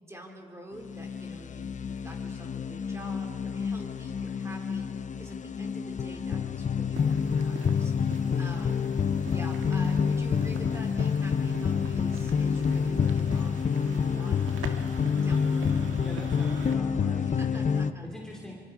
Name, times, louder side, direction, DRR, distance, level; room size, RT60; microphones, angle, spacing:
voice 1, 0.0-7.9 8.3-8.9 9.3-14.4 15.2-15.8 17.2-18.1, equal, 15° right, 1 dB, 4.3 m, -46 dB
sound 1, 0.8-17.9, left 6 dB, 40° left, 0.8 m, -28 dB
sound 2, 6.9-16.8, right 6 dB, 80° right, 1.8 m, -46 dB
voice 2, 16.0-17.7 18.1-18.5, left 1 dB, 5° left, -2 dB, 3.1 m, -44 dB
25.0 x 25.0 x 5.0 m, 2.3 s
cardioid pair, 90°, 20 cm